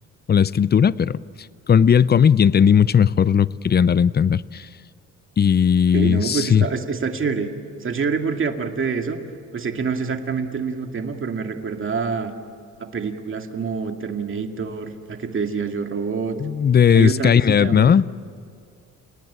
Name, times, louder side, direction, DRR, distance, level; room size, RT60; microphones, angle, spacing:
voice 1, 0.3-1.2 1.7-4.7 5.4-6.6 16.4-18.1, left 7 dB, 35° left, 19 dB, 0.6 m, -16 dB
voice 2, 5.9-7.5 7.8-9.2 9.5-12.3 12.8-16.4 16.9-18.0, right 5 dB, 45° right, 5 dB, 2.3 m, -26 dB
29.5 x 18.5 x 8.8 m, 2.3 s
cardioid pair, 90°, 30 cm